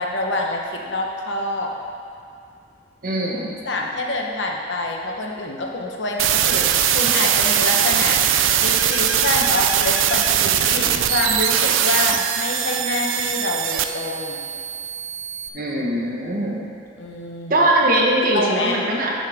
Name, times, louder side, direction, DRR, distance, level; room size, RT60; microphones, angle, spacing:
voice 1, 0.0-1.7 3.6-6.7 6.9-8.2 8.6-14.5 17.0-17.7 18.3-18.8, left 2 dB, 65° left, 1 dB, 0.9 m, -26 dB
voice 2, 3.0-3.5 15.5-16.6 17.5-19.1, right 1 dB, 45° right, -2 dB, 1.2 m, -21 dB
sound 1, 6.2-15.5, right 9 dB, 85° right, 0.4 m, -20 dB
10.5 x 6.5 x 3.5 m, 2.4 s
head